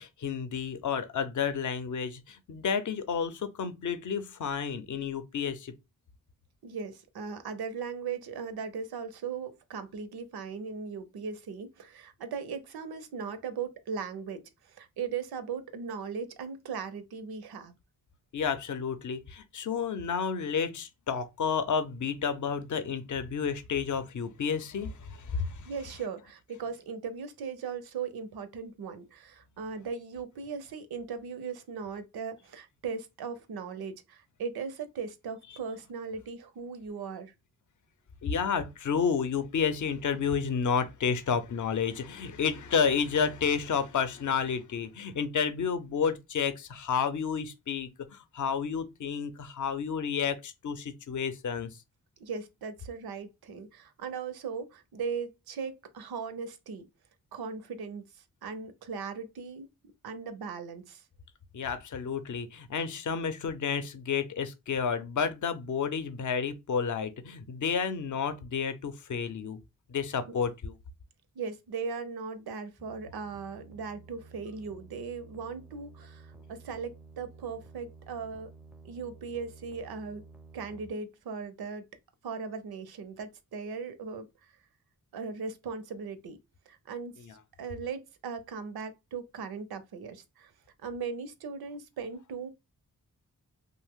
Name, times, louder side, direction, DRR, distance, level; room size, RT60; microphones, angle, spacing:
voice 1, 0.0-5.7 18.3-25.7 35.5-35.6 38.2-51.7 61.5-69.6 69.9-70.7 87.2-87.3, left 6 dB, 55° left, 0.6 m, -31 dB
voice 2, 6.6-17.7 25.7-37.3 52.2-56.9 57.3-59.7 60.0-61.0 70.3-70.4 71.4-78.5 78.8-80.2 80.5-81.8 82.2-84.5 85.1-86.4 86.7-87.3 87.6-90.5 90.8-92.5, right 5 dB, 80° right, 0.5 m, -38 dB
sound 1, 72.8-80.9, right 4 dB, 5° right, 0.4 m, -52 dB
2.6 x 2.0 x 3.5 m
cardioid pair, 50°, 37 cm